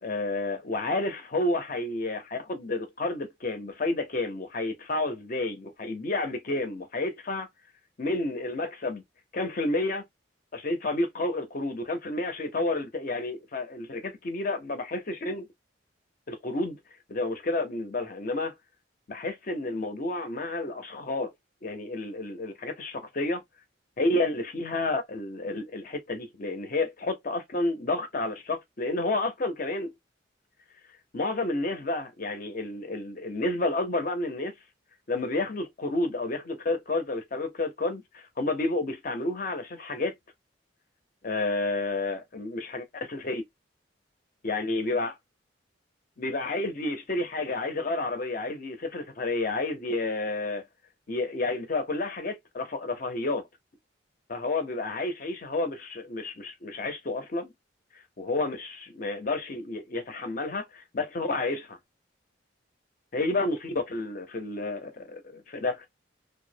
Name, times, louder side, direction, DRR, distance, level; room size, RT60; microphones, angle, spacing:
voice 1, 0.0-7.5 8.0-9.0 9.3-10.1 10.5-15.5 16.3-16.8 17.1-18.5 19.1-21.3 21.6-23.4 24.0-29.9 31.1-34.5 35.1-40.2 41.2-43.4 44.4-45.1 46.2-50.6 51.1-53.4 54.3-57.5 58.2-61.8 63.1-65.9, left 2 dB, 45° left, 0.6 m, -30 dB
2.3 x 2.0 x 2.7 m
head